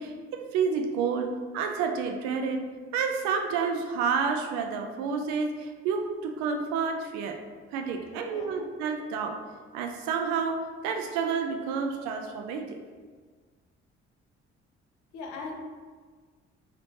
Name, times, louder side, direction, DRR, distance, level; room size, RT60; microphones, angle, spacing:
voice 1, 0.0-2.6 2.9-7.4 7.7-9.4 9.7-12.8, right 5 dB, 60° right, 4 dB, 0.5 m, -29 dB
voice 2, 8.0-8.7 15.1-15.5, left 4 dB, 60° left, 1 dB, 0.7 m, -41 dB
3.1 x 3.0 x 2.7 m, 1.5 s
figure-of-eight pair, 45°, 33 cm